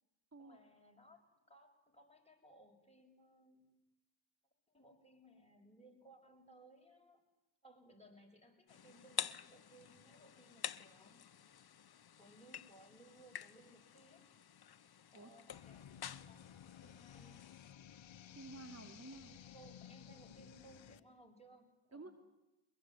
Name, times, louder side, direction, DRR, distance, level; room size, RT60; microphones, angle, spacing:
voice 1, 0.4-3.7 4.7-7.2 7.6-11.4 12.2-14.3 15.1-17.5 19.5-22.1, right 1 dB, 15° left, 1 dB, 7.5 m, -63 dB
sound 1, 8.7-17.7, left 9 dB, 50° left, 1.0 m, -49 dB
sound 2, 15.5-21.0, left 9 dB, 70° left, 1.2 m, -56 dB
voice 2, 18.3-19.4 21.9-22.1, right 2 dB, 30° right, 7 dB, 3.2 m, -52 dB
23.5 x 21.5 x 9.4 m, 1.0 s
supercardioid pair, 40°, 47 cm